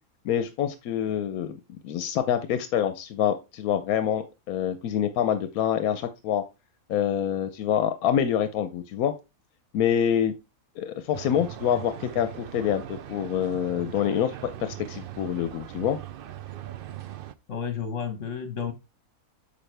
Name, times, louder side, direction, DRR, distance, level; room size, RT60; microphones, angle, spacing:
voice 1, 0.2-1.6 1.8-6.4 6.9-9.1 9.7-10.3 10.8-16.0, left 9 dB, 85° left, 1.1 m, -26 dB
sound 1, 11.1-17.3, right 11 dB, 90° right, 0.4 m, -40 dB
voice 2, 17.5-18.7, left 7 dB, 60° left, 1.7 m, -31 dB
8.5 x 5.4 x 3.3 m
omnidirectional pair, 1.5 m